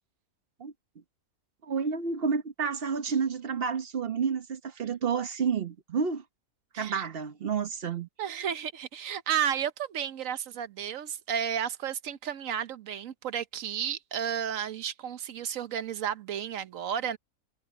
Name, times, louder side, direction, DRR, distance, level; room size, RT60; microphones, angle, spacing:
voice 1, 1.6-6.2 6.7-8.1, right 6 dB, 45° right, 1.2 m, -30 dB
voice 2, 6.7-7.1 8.2-17.2, right 9 dB, 65° right, 1.2 m, -32 dB
omnidirectional pair, 1.5 m